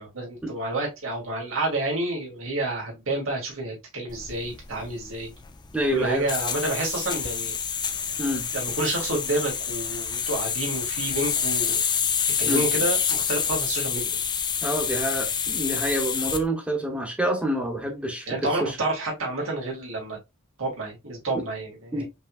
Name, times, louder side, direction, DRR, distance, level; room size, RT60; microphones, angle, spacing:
voice 1, 0.0-5.3 5.9-7.5 8.5-11.8 12.4-14.1 18.3-20.2 20.6-22.0, right 2 dB, 75° right, 2.2 m, -29 dB
sound 1, 4.1-16.4, left 7 dB, 20° left, 0.4 m, -28 dB
voice 2, 5.7-6.3 8.2-8.4 12.4-12.7 14.6-18.8 21.9-22.0, right 1 dB, 5° right, 1.0 m, -27 dB
5.2 x 3.1 x 2.4 m
head